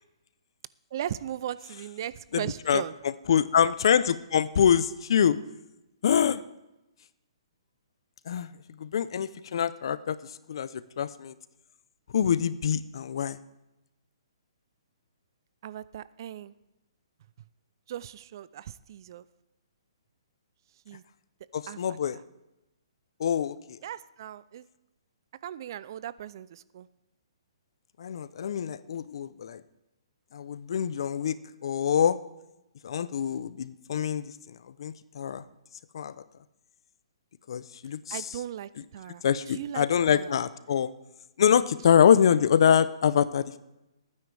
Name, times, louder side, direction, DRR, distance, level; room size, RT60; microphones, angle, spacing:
voice 1, 0.9-2.9 15.6-16.5 17.9-19.2 20.9-21.0 21.7-22.2 23.8-24.7 25.4-26.9 38.1-40.3, right 11 dB, 45° right, 17 dB, 0.5 m, -38 dB
voice 2, 3.3-5.4 6.0-6.4 8.3-8.5 8.8-10.2 10.5-10.7 11.0-11.3 12.1-13.4 21.5-22.2 23.2-23.8 28.0-29.6 30.3-31.4 31.6-32.2 32.8-34.3 34.8-35.4 35.9-36.1 37.5-38.2 39.2-40.9 41.4-43.6, left 8 dB, 60° left, 16 dB, 0.7 m, -24 dB
20.0 x 9.7 x 3.4 m, 0.94 s
hypercardioid pair, 150°, 3 cm